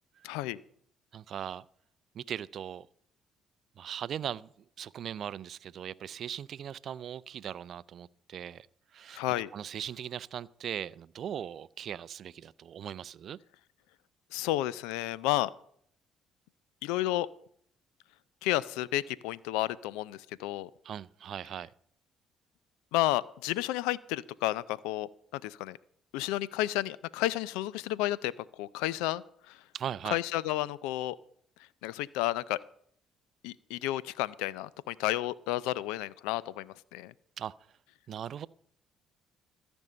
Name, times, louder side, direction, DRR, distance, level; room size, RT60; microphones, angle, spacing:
voice 1, 0.2-0.6 9.1-9.5 14.3-15.5 16.8-17.3 18.4-20.7 22.9-25.1 25.4-25.8 26.1-29.6 30.1-31.2 31.8-32.6 33.4-37.1, left 15 dB, 85° left, 0.4 m, -31 dB
voice 2, 1.1-1.7 2.1-2.9 3.8-4.5 4.8-8.7 8.9-9.2 9.5-13.4 20.8-21.7 29.7-30.2 37.4-37.5 38.1-38.5, right 9 dB, 60° right, 0.4 m, -39 dB
13.5 x 5.3 x 8.7 m
supercardioid pair, 65°, 0 cm